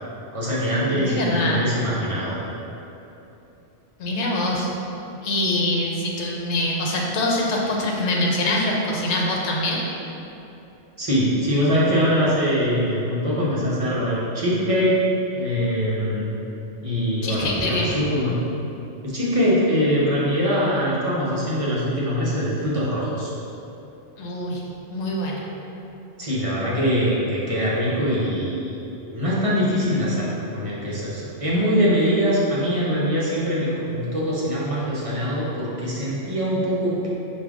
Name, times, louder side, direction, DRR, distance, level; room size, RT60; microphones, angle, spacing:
voice 1, 0.3-2.4 11.0-15.0 15.3-16.3 16.8-18.4 19.0-23.3 26.2-37.1, equal, 35° right, -7 dB, 0.7 m, -23 dB
voice 2, 0.9-1.6 4.0-4.7 5.2-9.8 17.2-17.9 24.2-24.6 24.9-25.4, left 1 dB, 75° left, -2 dB, 1.0 m, -24 dB
4.8 x 2.5 x 3.5 m, 2.9 s
omnidirectional pair, 1.2 m